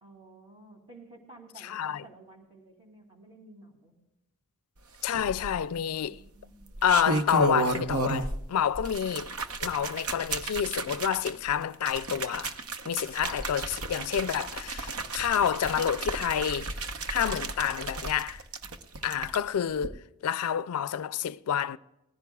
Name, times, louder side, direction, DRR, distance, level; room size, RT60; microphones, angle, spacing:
voice 1, 0.0-4.0 6.0-6.8 19.0-19.1, right 2 dB, 25° right, 2.6 m, -53 dB
voice 2, 1.6-2.0 5.0-6.2 6.8-9.3 9.6-12.6 12.9-16.8 17.1-18.4 19.0-20.0 20.2-21.8, left 8 dB, 80° left, 0.4 m, -28 dB
sound 1, 5.1-5.8 6.6-8.5 8.7-19.4 19.8-19.9, right 3 dB, 80° right, 0.9 m, -33 dB
20.0 x 15.5 x 2.3 m
head